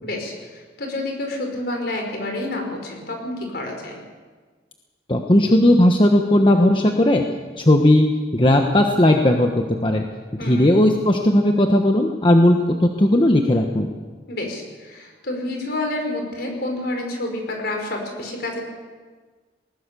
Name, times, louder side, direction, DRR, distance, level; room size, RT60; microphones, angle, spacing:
voice 1, 0.0-4.0 10.4-10.7 14.3-18.6, left 2 dB, 60° left, 2 dB, 5.4 m, -29 dB
voice 2, 5.1-7.2 7.6-8.1 8.3-10.0 10.4-13.9, left 1 dB, 30° left, 3 dB, 1.2 m, -16 dB
20.0 x 20.0 x 6.9 m, 1.4 s
head